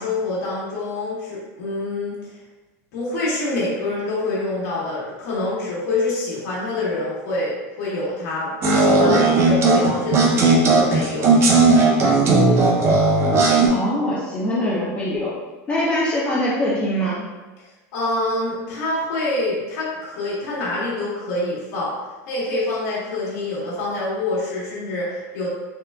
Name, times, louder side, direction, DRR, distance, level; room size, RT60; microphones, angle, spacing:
voice 1, 0.0-2.3 2.9-11.4 17.6-17.7 17.9-21.9 22.3-25.5, left 2 dB, 75° left, -6 dB, 1.0 m, -26 dB
sound 1, 8.6-13.7, right 3 dB, 30° right, 0.5 m, -16 dB
voice 2, 13.7-15.3 15.7-17.2, equal, 20° left, -7 dB, 0.4 m, -23 dB
3.6 x 2.2 x 2.2 m, 1.2 s
supercardioid pair, 145°, 9 cm